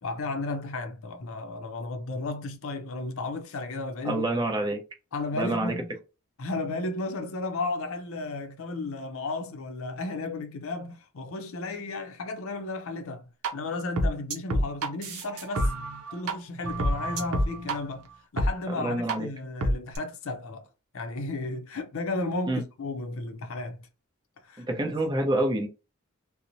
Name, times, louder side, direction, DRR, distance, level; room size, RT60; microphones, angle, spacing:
voice 1, 0.0-4.3 5.1-5.9 6.4-13.2 13.5-15.7 16.1-20.6 20.9-23.9 24.4-24.7, left 2 dB, 65° left, 0.5 m, -34 dB
voice 2, 4.0-4.8 5.4-5.7 18.8-19.3 22.5-22.6 24.7-25.7, right 1 dB, 20° right, 0.6 m, -27 dB
sound 1, 13.4-13.5 14.0-16.3 16.6-17.8 18.4-18.5 19.1-19.2 19.6-20.0, right 1 dB, 85° right, 0.6 m, -27 dB
2.8 x 2.0 x 2.6 m
head